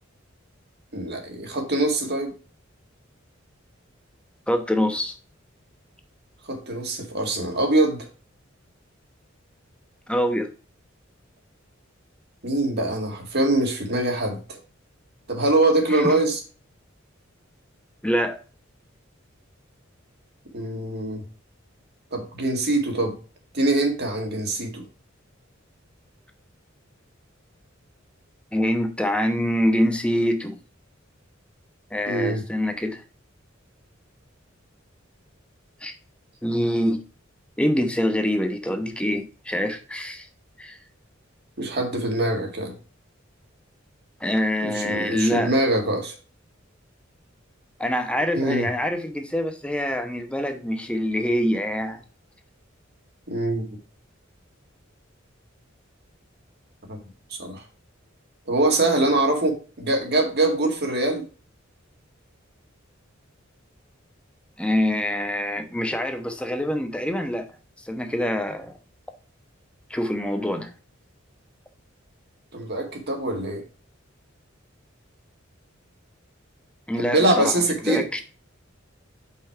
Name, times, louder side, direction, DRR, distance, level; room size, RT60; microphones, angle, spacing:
voice 1, 0.9-2.3 6.5-8.1 12.4-14.6 15.3-16.4 20.5-21.2 22.1-23.2 23.5-24.8 32.1-32.4 41.6-42.7 44.6-46.1 48.4-48.7 53.3-53.6 56.9-57.0 57.3-57.6 58.5-61.2 72.5-73.6 77.0-78.1, right 2 dB, 55° right, 2.0 m, -23 dB
voice 2, 4.5-5.1 10.1-10.5 15.9-16.1 18.0-18.4 28.5-30.5 31.9-33.0 35.8-35.9 36.4-37.0 37.6-40.3 40.6-40.8 44.2-45.5 47.8-52.0 64.6-67.5 67.8-68.8 69.9-70.7 76.9-77.5 77.8-78.2, equal, 5° left, 1.0 m, -25 dB
5.6 x 5.3 x 4.5 m
head